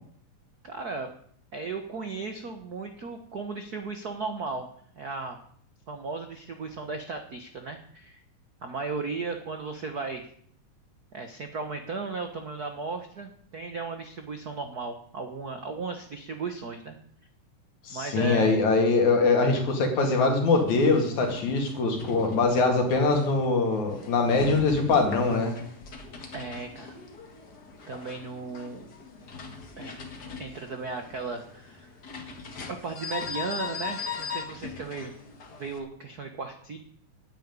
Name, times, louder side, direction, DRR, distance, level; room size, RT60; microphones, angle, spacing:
voice 1, 0.6-1.1 1.5-4.7 5.0-5.4 5.9-8.2 8.6-10.2 11.1-17.0 17.9-18.6 26.3-27.0 27.9-28.9 29.8-29.9 30.4-31.9 32.7-35.2 35.6-36.8, right 4 dB, 90° right, 5 dB, 0.8 m, -35 dB
voice 2, 17.9-25.5, left 3 dB, 65° left, 3 dB, 3.8 m, -23 dB
sound 1, 20.5-35.8, left 5 dB, 40° left, 1.9 m, -40 dB
10.0 x 9.1 x 9.6 m, 0.64 s
omnidirectional pair, 3.7 m